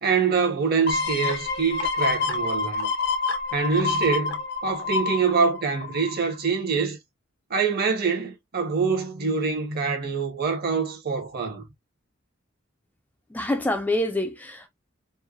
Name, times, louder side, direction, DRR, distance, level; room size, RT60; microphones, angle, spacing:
voice 1, 0.0-2.9 3.5-7.0 7.5-11.6, right 5 dB, 50° right, 0.8 m, -25 dB
sound 1, 0.9-6.4 6.8-6.9, left 4 dB, 55° left, 0.6 m, -27 dB
voice 2, 13.3-14.7, left 1 dB, 10° left, 0.3 m, -26 dB
3.1 x 2.1 x 2.3 m
head